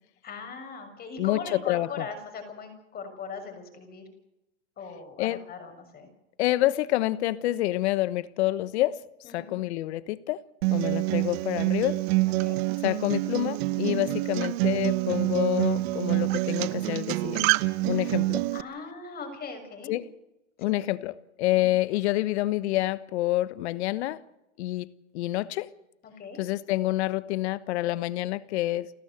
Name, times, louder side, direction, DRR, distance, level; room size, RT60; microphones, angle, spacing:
voice 1, 0.2-4.0 4.8-6.1 9.2-9.5 12.2-12.6 17.9-18.0 18.5-19.9 20.6-20.7 21.5-21.7 26.0-26.4, left 5 dB, 25° left, 6.5 m, -40 dB
voice 2, 1.2-1.9 5.2-5.4 6.4-9.0 9.3-10.4 10.7-12.0 12.8-17.5 17.8-18.4 19.9-20.1 20.6-24.2 24.6-24.9 25.1-25.7 26.4-28.9, left 16 dB, 65° left, 1.2 m, -27 dB
Acoustic guitar, 10.6-18.6, right 20 dB, 60° right, 1.0 m, -26 dB
30.0 x 14.0 x 7.9 m
supercardioid pair, 130°, 35 cm